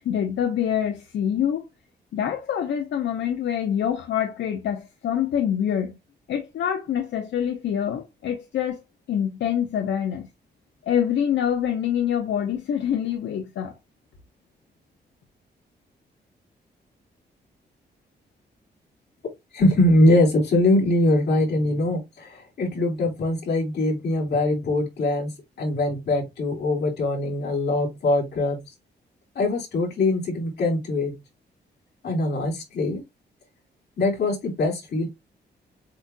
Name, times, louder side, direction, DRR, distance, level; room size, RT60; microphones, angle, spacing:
voice 1, 0.0-1.6 2.1-5.9 6.3-8.8 9.1-10.3 10.8-13.7, left 9 dB, 90° left, 0.8 m, -25 dB
voice 2, 19.5-25.3 25.6-28.6 29.3-31.2 32.0-33.0 34.0-35.1, left 1 dB, 65° left, 3.4 m, -22 dB
7.7 x 2.8 x 2.2 m
wide cardioid pair, 155°, 18 cm